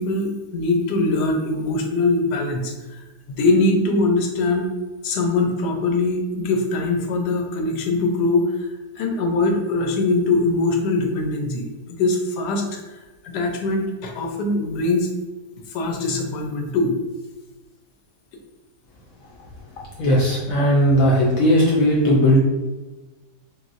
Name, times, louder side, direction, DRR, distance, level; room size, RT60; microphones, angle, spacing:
voice 1, 0.0-4.7 5.0-8.7 9.0-12.8 13.3-15.1 15.7-16.9, left 2 dB, 85° left, 2 dB, 1.2 m, -22 dB
voice 2, 20.0-22.4, equal, 70° left, -4 dB, 0.9 m, -17 dB
3.1 x 2.5 x 2.4 m, 1.2 s
omnidirectional pair, 1.7 m